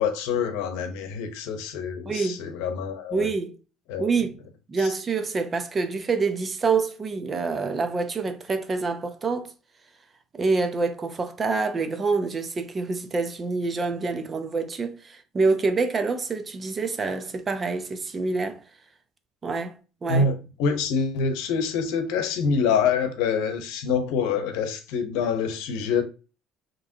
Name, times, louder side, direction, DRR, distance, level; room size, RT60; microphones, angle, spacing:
voice 1, 0.0-3.3 3.9-4.1 4.8-4.9 20.1-26.0, left 5 dB, 80° left, 0.8 m, -26 dB
voice 2, 2.1-2.4 3.1-3.6 4.0-4.4 4.7-9.5 10.3-18.6 19.4-20.3, right 4 dB, 30° right, 0.7 m, -26 dB
4.8 x 3.1 x 2.8 m
cardioid pair, 105°, 0 cm